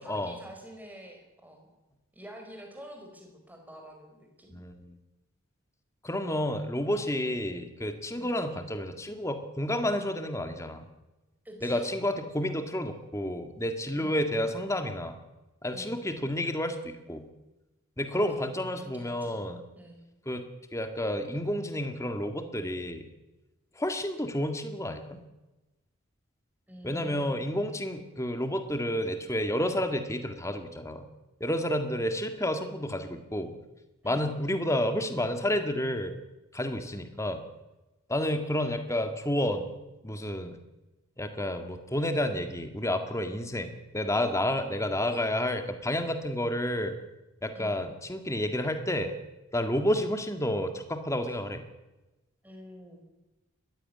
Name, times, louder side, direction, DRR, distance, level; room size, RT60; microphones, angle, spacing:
voice 1, 0.0-1.7 2.1-4.5 8.1-8.4 11.4-11.8 13.9-14.2 15.7-16.0 18.1-18.5 18.8-19.4 19.7-20.0 26.7-27.4 34.0-34.3 47.5-47.8 52.4-53.0, equal, 10° right, 3 dB, 4.7 m, -47 dB
voice 2, 4.5-5.0 6.0-10.9 11.6-15.2 15.6-17.3 18.0-19.6 20.3-20.4 20.7-23.0 23.8-25.2 26.8-31.0 31.4-33.5 34.0-36.2 36.5-37.4 38.1-39.7 40.0-40.6 41.2-47.0 47.4-49.2 49.5-51.6, left 1 dB, 15° left, 7 dB, 1.9 m, -30 dB
20.5 x 15.0 x 9.7 m, 1.1 s
head